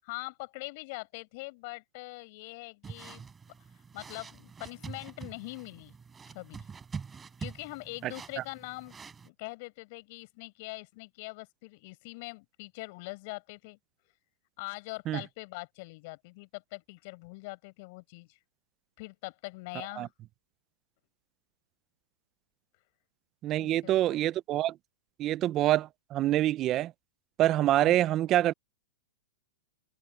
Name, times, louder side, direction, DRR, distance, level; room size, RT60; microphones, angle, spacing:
voice 1, 0.0-3.3 3.9-5.9 6.3-6.7 7.4-8.9 9.2-13.8 14.6-18.4 19.0-20.1 23.5-24.0 27.8-28.0, left 26 dB, 50° left, 7.8 m, -43 dB
sound 1, 2.8-9.3, right 5 dB, 15° right, 6.0 m, -45 dB
voice 2, 23.4-24.8 25.2-26.9 27.4-28.5, right 14 dB, 30° right, 0.6 m, -26 dB
hypercardioid pair, 140°, 0 cm